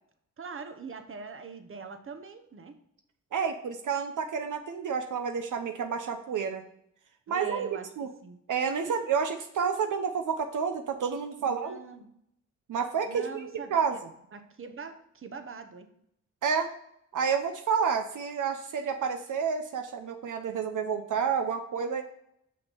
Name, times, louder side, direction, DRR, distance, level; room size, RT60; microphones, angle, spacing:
voice 1, 0.4-2.8 7.3-7.9 8.2-8.4 8.8-9.0 11.4-12.1 13.1-14.0 14.3-15.9, right 5 dB, 40° right, 7 dB, 1.0 m, -43 dB
voice 2, 3.3-6.6 7.3-7.7 8.0-8.1 8.5-11.8 12.7-14.0 16.4-16.7 17.1-22.0, right 6 dB, 75° right, 6 dB, 0.7 m, -29 dB
6.5 x 5.7 x 5.4 m, 0.73 s
cardioid pair, 85°, 31 cm